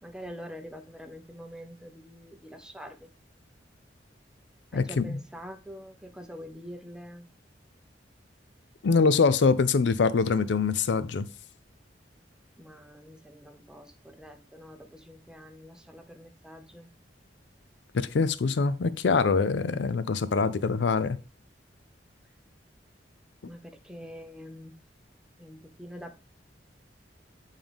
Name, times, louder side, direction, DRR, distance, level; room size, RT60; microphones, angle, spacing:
voice 1, 0.0-3.1 4.7-7.3 12.6-16.9 23.5-24.7 25.4-26.2, equal, 5° right, 0.7 m, -45 dB
voice 2, 4.7-5.2 8.8-11.3 17.9-21.2, left 4 dB, 70° left, 0.5 m, -24 dB
9.0 x 3.7 x 3.4 m
head